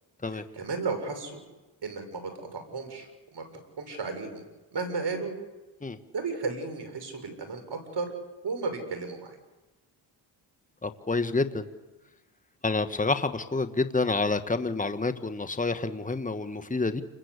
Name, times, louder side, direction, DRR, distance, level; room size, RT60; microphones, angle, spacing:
voice 1, 0.3-1.4 1.8-3.4 3.8-4.4 4.7-5.3 6.1-8.1 8.4-9.3, right 4 dB, 60° right, 7 dB, 7.3 m, -34 dB
voice 2, 10.8-11.7 12.6-17.0, left 3 dB, 15° left, 9 dB, 1.8 m, -28 dB
29.0 x 22.0 x 8.4 m, 1.1 s
supercardioid pair, 55°, 47 cm